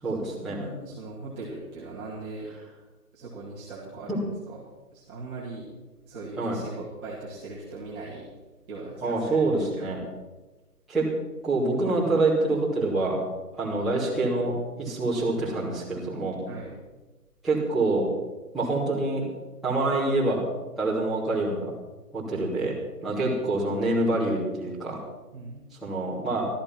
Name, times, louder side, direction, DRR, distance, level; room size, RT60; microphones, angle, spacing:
voice 1, 0.0-0.6 6.4-6.6 9.0-10.0 10.9-11.1 11.4-13.2 13.6-16.4 17.4-18.1 18.5-19.2 19.6-20.4 20.8-21.7 22.1-22.8 23.0-25.0 25.8-26.5, right 2 dB, ahead, -13 dB, 2.9 m, -26 dB
voice 2, 0.5-2.5 3.1-5.7 6.1-8.3 8.7-9.5 9.8-10.0 13.6-13.8 16.5-16.8 25.3-25.6, right 3 dB, 15° right, -8 dB, 2.4 m, -40 dB
14.5 x 13.5 x 5.9 m, 1.2 s
hypercardioid pair, 160°, 47 cm